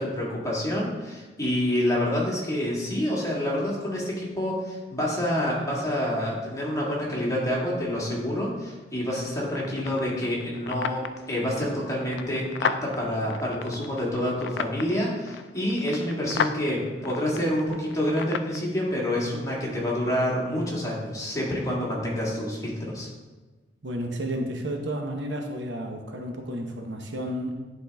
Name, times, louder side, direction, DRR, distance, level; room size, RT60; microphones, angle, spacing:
voice 1, 0.0-23.1, left 1 dB, 20° left, -5 dB, 1.7 m, -28 dB
sound 1, 9.5-18.6, left 6 dB, 75° left, 0.3 m, -35 dB
voice 2, 23.8-27.6, right 1 dB, 85° right, 3 dB, 1.0 m, -32 dB
10.0 x 4.0 x 3.4 m, 1.3 s
head